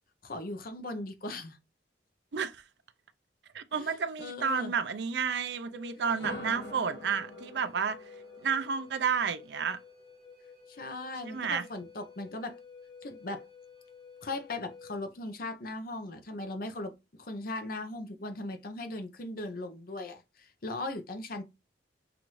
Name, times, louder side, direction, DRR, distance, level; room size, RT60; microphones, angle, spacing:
voice 1, 0.2-1.6 3.7-4.7 10.7-12.6 13.0-13.4 14.2-16.9 17.2-21.4, left 2 dB, 55° left, 0.7 m, -38 dB
voice 2, 2.3-2.6 3.5-8.0 8.4-9.8 11.2-11.6, right 6 dB, 70° right, 0.5 m, -31 dB
Wind instrument woodwind instrument, 5.7-15.0, left 5 dB, 35° left, 1.2 m, -52 dB
sound 1, 6.0-10.0, left 1 dB, 80° left, 1.5 m, -45 dB
5.8 x 2.6 x 3.0 m
head